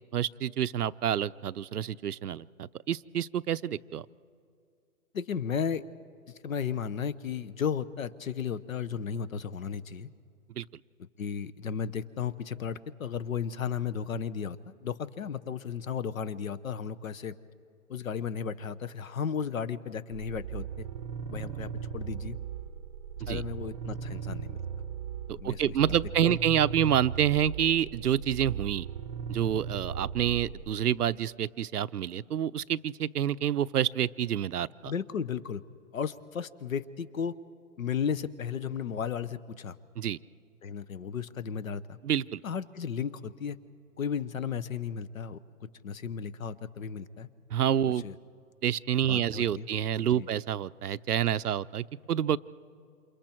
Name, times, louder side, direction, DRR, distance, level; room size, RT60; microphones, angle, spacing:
voice 1, 0.1-4.0 10.6-10.7 23.2-23.4 25.4-28.9 29.3-34.9 40.0-40.2 42.0-42.4 47.5-48.0 48.6-52.4, right 10 dB, 85° right, 14 dB, 0.7 m, -28 dB
voice 2, 5.1-5.8 6.4-10.1 11.2-17.4 17.9-20.9 21.3-22.4 23.3-24.6 25.4-25.8 26.2-26.4 34.8-35.6 35.9-37.4 37.8-39.8 40.6-42.0 42.4-43.6 44.0-47.3 47.9-48.2 49.1-49.7 50.1-50.3, left 7 dB, 65° left, 17 dB, 1.1 m, -34 dB
sound 1, 20.1-30.8, right 7 dB, 20° right, 0.7 m, -38 dB
28.5 x 28.0 x 4.5 m, 2.4 s
hypercardioid pair, 160°, 44 cm